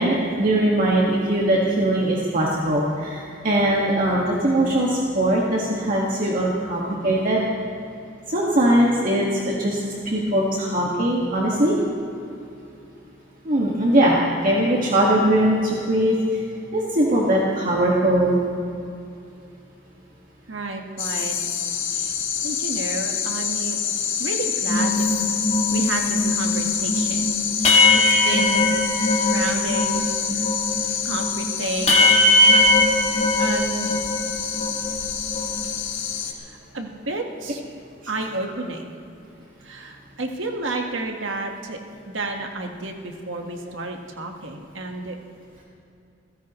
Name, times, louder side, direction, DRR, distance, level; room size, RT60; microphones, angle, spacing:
voice 1, 0.0-7.5 8.3-9.8 10.1-11.8 13.5-14.2 14.4-16.4 16.7-18.4 30.3-30.4, right 1 dB, 45° right, -4 dB, 1.9 m, -21 dB
voice 2, 20.5-21.3 21.9-22.1 22.4-23.8 24.2-25.0 25.7-27.3 27.6-28.7 29.2-30.0 30.3-30.5 31.0-32.1 33.0-33.1 33.4-34.0 36.3-37.6 38.1-38.9 39.6-41.8 42.1-45.2, right 2 dB, 75° right, 2 dB, 1.6 m, -31 dB
sound 1, 21.0-36.3, left 8 dB, 80° left, 1.7 m, -27 dB
sound 2, 24.7-30.1 30.4-34.2 34.5-35.7, left 2 dB, 35° left, 2.2 m, -20 dB
28.0 x 16.0 x 3.2 m, 2.6 s
head